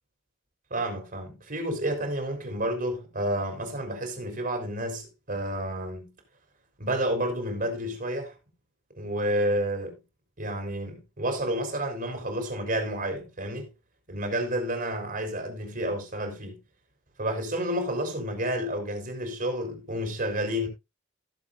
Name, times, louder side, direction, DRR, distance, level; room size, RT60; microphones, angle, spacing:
voice 1, 0.7-6.1 6.8-8.3 9.0-10.0 10.4-13.7 14.1-16.6 17.2-20.7, right 1 dB, 45° right, 3.9 m, -30 dB
17.5 x 7.4 x 2.5 m
head